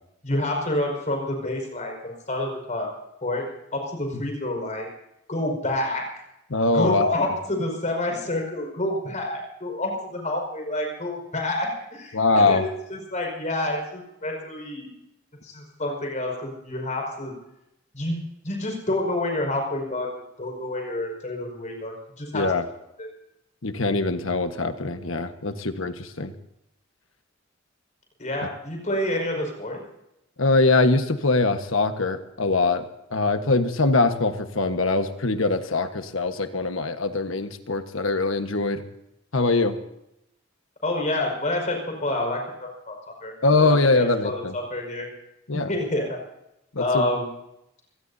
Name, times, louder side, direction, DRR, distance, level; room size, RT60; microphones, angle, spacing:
voice 1, 0.2-2.9 3.2-3.5 3.7-4.9 5.3-6.0 6.7-14.9 15.4-17.3 17.9-18.2 18.4-20.1 20.4-22.5 23.0-23.1 28.2-29.8 40.8-45.1 45.5-46.2 46.8-47.3, left 1 dB, 40° left, 1 dB, 5.3 m, -28 dB
voice 2, 6.5-7.3 12.1-12.7 22.3-22.6 23.6-26.3 30.4-32.9 33.1-38.8 39.3-39.8 43.4-44.5 45.5-45.7 46.7-47.1, left 3 dB, 80° left, 8 dB, 1.4 m, -22 dB
25.5 x 18.5 x 2.8 m, 0.84 s
head